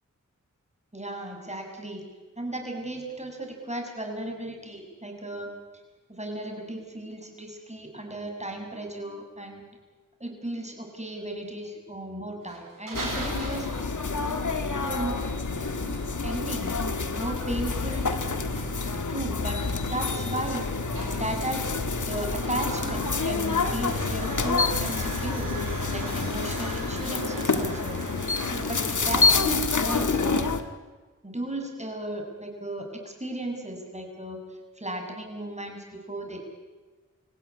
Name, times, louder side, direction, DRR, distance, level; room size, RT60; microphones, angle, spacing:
voice 1, 0.9-2.1 2.4-5.5 6.1-9.6 10.2-13.7 14.8-15.6 16.2-16.7 17.2-18.7 19.1-19.6 19.9-20.7 21.1-21.7 22.1-25.5 25.9-28.0 28.4-30.6 31.2-34.4 34.8-36.4, right 1 dB, 20° right, 2 dB, 7.3 m, -35 dB
sound 1, 12.4-29.4, right 2 dB, 85° right, 7.4 m, -41 dB
sound 2, 12.9-30.6, left 4 dB, 70° left, 1.8 m, -28 dB
26.5 x 17.0 x 9.8 m, 1.3 s
cardioid pair, 40°, 32 cm